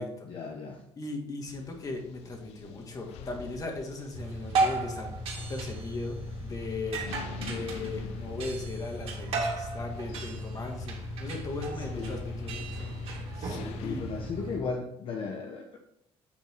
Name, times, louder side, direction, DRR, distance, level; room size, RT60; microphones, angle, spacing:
voice 1, 0.3-0.8 11.9-12.2 13.8-15.8, left 4 dB, 55° left, 1 dB, 1.0 m, -36 dB
voice 2, 1.0-5.1 5.5-13.0 13.3-14.0 15.2-15.3, left 3 dB, 35° left, 3 dB, 1.9 m, -38 dB
sound 1, 1.5-14.3, left 5 dB, 90° left, 0.7 m, -46 dB
sound 2, 4.1-14.6, right 2 dB, 70° right, 2.3 m, -34 dB
9.1 x 4.6 x 4.6 m, 0.77 s
cardioid pair, 110°, 10 cm